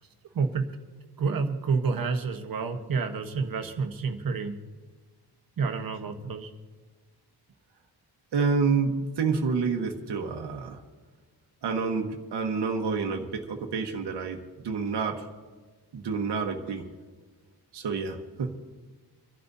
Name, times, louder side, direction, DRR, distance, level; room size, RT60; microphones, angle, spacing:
voice 1, 0.3-0.7 1.2-4.5 5.6-6.5, right 5 dB, 55° right, 5 dB, 1.2 m, -29 dB
voice 2, 8.3-10.8 11.6-15.2 15.9-16.9 17.7-18.5, right 5 dB, 75° right, 2 dB, 1.3 m, -28 dB
28.5 x 12.0 x 2.7 m, 1.4 s
wide cardioid pair, 160°, 41 cm